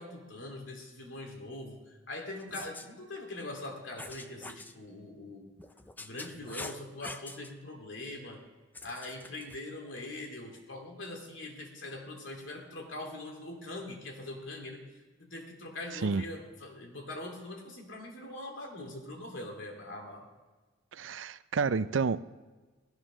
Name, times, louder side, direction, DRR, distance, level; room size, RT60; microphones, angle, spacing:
voice 1, 0.0-5.5 6.0-8.4 8.8-14.8 15.2-20.3, left 2 dB, 75° left, 2 dB, 2.7 m, -42 dB
sound 1, 2.4-2.9 4.0-4.7 5.6-7.5 8.7-9.6, left 2 dB, 10° left, 0.5 m, -45 dB
voice 2, 15.9-16.2 20.9-22.2, right 4 dB, 80° right, 14 dB, 0.5 m, -30 dB
16.5 x 12.5 x 6.2 m, 1.3 s
head